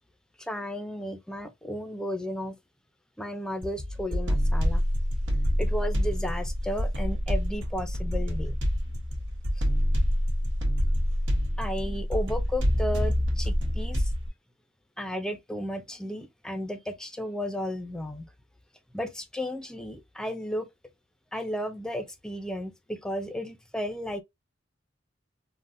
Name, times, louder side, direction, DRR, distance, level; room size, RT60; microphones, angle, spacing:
voice 1, 0.4-2.6 3.2-4.8 5.6-8.6 11.6-14.1 15.0-18.3 18.9-20.7 21.3-24.2, equal, 5° left, 0.5 m, -34 dB
sound 1, 3.6-14.3, equal, 80° right, 1.1 m, -27 dB
3.7 x 2.1 x 2.5 m
head